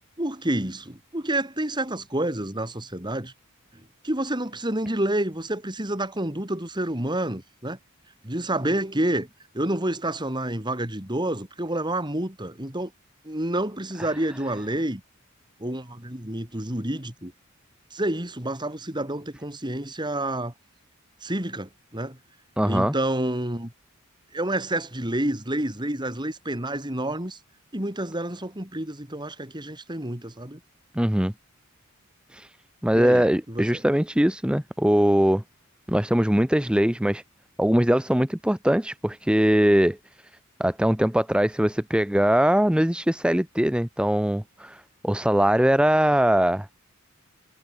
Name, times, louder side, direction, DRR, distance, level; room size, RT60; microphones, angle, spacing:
voice 1, 0.2-3.3 4.0-7.8 8.2-9.3 9.5-12.9 13.2-15.0 15.6-17.3 17.9-20.5 21.2-22.2 22.7-23.7 24.3-27.4 27.7-30.6 32.9-33.8, right 1 dB, 20° right, 3.6 m, -29 dB
voice 2, 22.6-22.9 30.9-31.3 32.3-32.5 32.8-35.4 35.9-37.2 37.6-40.0 40.6-46.7, equal, 5° right, 0.9 m, -21 dB
head